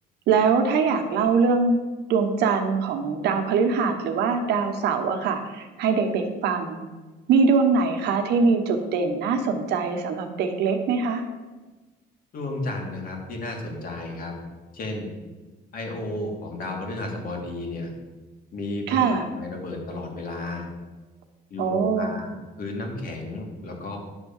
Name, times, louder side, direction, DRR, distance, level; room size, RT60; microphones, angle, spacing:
voice 1, 0.3-1.8 2.1-6.8 7.3-11.2 18.9-19.2 21.6-22.1, right 5 dB, 80° right, 5 dB, 1.2 m, -22 dB
voice 2, 12.3-14.3 14.7-15.1 15.7-17.9 18.5-20.7 21.5-22.3 22.6-24.0, left 2 dB, 55° left, 1 dB, 2.3 m, -33 dB
10.0 x 3.6 x 7.2 m, 1.3 s
cardioid pair, 110°, 17 cm